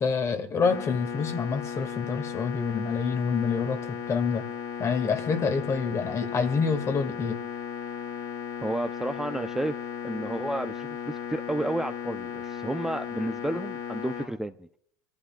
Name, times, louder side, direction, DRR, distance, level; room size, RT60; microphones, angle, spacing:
voice 1, 0.0-3.8 4.1-4.5 4.8-7.4, left 5 dB, 35° left, 2.1 m, -27 dB
sound 1, 0.6-14.3, left 8 dB, 60° left, 5.3 m, -36 dB
voice 2, 8.6-9.8 10.0-14.7, right 1 dB, 5° right, 0.6 m, -31 dB
26.5 x 14.5 x 2.4 m
hypercardioid pair, 80°, 8 cm